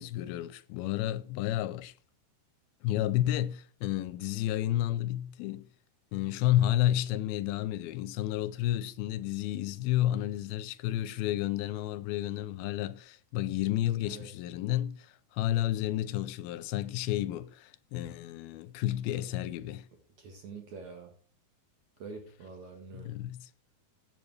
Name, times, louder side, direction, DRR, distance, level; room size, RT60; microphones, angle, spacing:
voice 1, 0.0-1.9 2.8-5.7 6.1-19.9 22.9-23.5, left 13 dB, 90° left, 2.5 m, -31 dB
voice 2, 20.2-21.1 22.0-23.1, right 4 dB, 55° right, 2.5 m, -45 dB
15.5 x 7.3 x 3.3 m
omnidirectional pair, 4.3 m